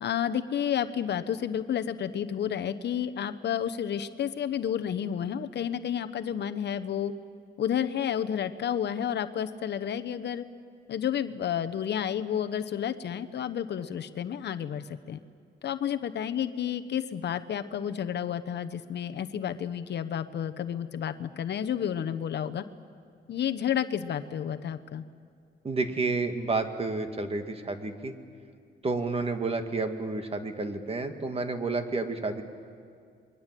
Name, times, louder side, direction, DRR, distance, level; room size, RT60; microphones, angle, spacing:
voice 1, 0.0-7.1 7.6-10.4 10.9-15.2 15.6-22.6 23.3-25.0, left 9 dB, 60° left, 9 dB, 1.0 m, -31 dB
voice 2, 25.6-28.1 28.8-32.4, right 3 dB, 30° right, 7 dB, 2.0 m, -30 dB
28.0 x 22.0 x 7.6 m, 2.2 s
cardioid pair, 90°, 20 cm